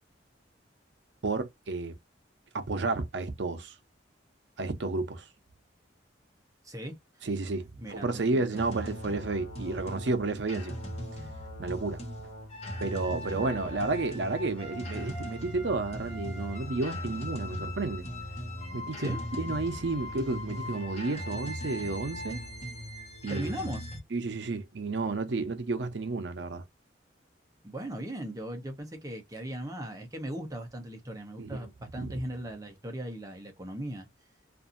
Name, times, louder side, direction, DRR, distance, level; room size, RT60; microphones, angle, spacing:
voice 1, 1.2-1.9 2.5-3.7 4.6-5.2 7.2-10.8 11.6-12.0 12.8-18.0 18.7-22.4 23.2-23.5 24.1-26.6 31.4-31.7 32.0-32.1, right 3 dB, 70° right, 0.7 m, -31 dB
voice 2, 6.6-7.3 7.8-8.6 13.3-13.8 19.0-19.2 23.3-23.9 27.6-34.1, right 1 dB, 20° right, 0.8 m, -38 dB
sound 1, 8.5-24.0, left 1 dB, 35° left, 1.1 m, -39 dB
2.6 x 2.5 x 2.5 m
head